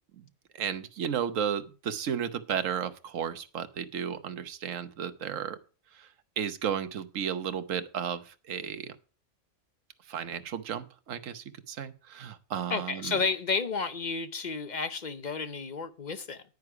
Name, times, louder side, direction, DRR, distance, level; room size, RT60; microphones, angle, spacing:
voice 1, 0.5-5.6 5.9-6.1 6.4-8.9 10.1-13.2, right 8 dB, 70° right, 1.3 m, -33 dB
voice 2, 12.7-16.4, left 4 dB, 40° left, 0.7 m, -31 dB
10.0 x 9.6 x 4.8 m
omnidirectional pair, 1.4 m